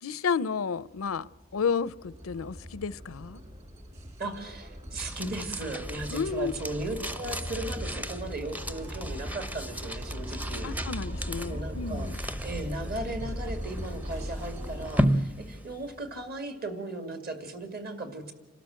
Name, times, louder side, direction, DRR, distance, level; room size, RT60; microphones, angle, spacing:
voice 1, 0.0-3.4 6.1-6.5 10.6-12.2, left 6 dB, 85° left, 0.5 m, -31 dB
sound 1, 1.0-14.9, equal, 30° right, 2.3 m, -39 dB
voice 2, 4.2-10.7 11.4-18.3, right 2 dB, 45° right, 2.3 m, -37 dB
sound 2, 5.0-16.3, equal, 10° right, 0.6 m, -35 dB
28.0 x 13.0 x 7.7 m
head